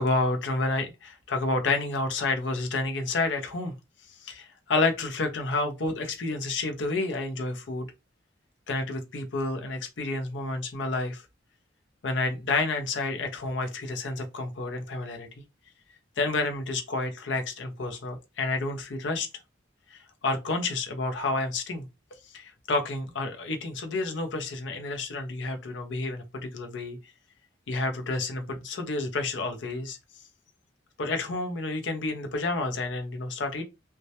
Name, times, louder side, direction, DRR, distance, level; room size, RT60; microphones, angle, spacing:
voice 1, 0.0-3.7 4.2-7.9 8.7-11.2 12.0-15.3 16.2-19.3 19.9-21.8 22.3-27.0 27.7-30.0 31.0-33.6, left 3 dB, 70° left, 0.6 m, -30 dB
2.2 x 2.0 x 2.7 m
head